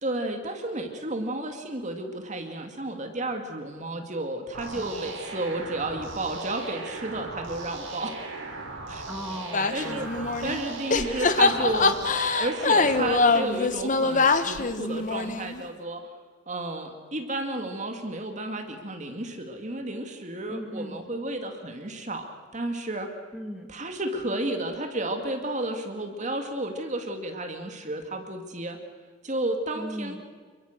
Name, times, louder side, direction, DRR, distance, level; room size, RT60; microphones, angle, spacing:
voice 1, 0.0-8.2 8.9-9.1 9.7-10.1 10.4-12.0 12.4-16.1 16.5-23.1 23.7-28.8 29.2-30.2, right 2 dB, 35° right, 5 dB, 2.4 m, -32 dB
sound 1, 4.5-13.1, right 3 dB, 80° right, 6.7 m, -38 dB
voice 2, 4.7-5.1 9.1-10.5 20.5-21.0 23.3-23.7 29.7-30.2, equal, 5° right, 2 dB, 2.5 m, -38 dB
sound 2, 9.5-10.6 10.9-15.6, left 3 dB, 40° left, 1.3 m, -24 dB
28.0 x 22.5 x 6.7 m, 1.5 s
head